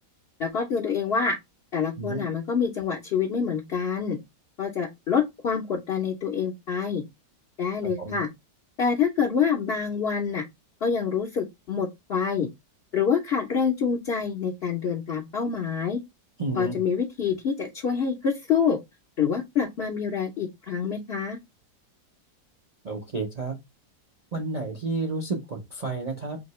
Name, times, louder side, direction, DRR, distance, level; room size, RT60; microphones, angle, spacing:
voice 1, 0.4-1.3 1.7-4.2 4.6-7.0 7.6-8.3 8.8-10.4 10.8-12.5 12.9-16.0 16.6-18.8 19.2-21.4, left 6 dB, 55° left, 0.6 m, -26 dB
voice 2, 7.8-8.2 16.4-16.8 22.8-23.6 24.3-26.4, right 3 dB, 60° right, 0.4 m, -31 dB
5.1 x 2.8 x 3.0 m
omnidirectional pair, 2.0 m